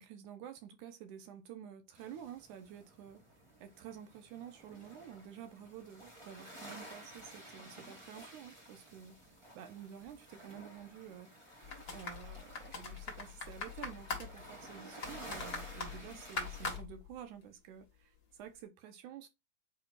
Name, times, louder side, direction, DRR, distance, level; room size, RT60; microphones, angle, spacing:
voice 1, 0.0-3.2 3.6-9.2 9.6-11.3 11.9-19.3, right 9 dB, 75° right, 2.1 m, -50 dB
sound 1, 1.9-16.8, right 1 dB, 20° right, 0.8 m, -53 dB
sound 2, 11.6-17.5 17.8-17.9, left 5 dB, 40° left, 1.4 m, -43 dB
8.6 x 4.8 x 2.4 m
omnidirectional pair, 4.1 m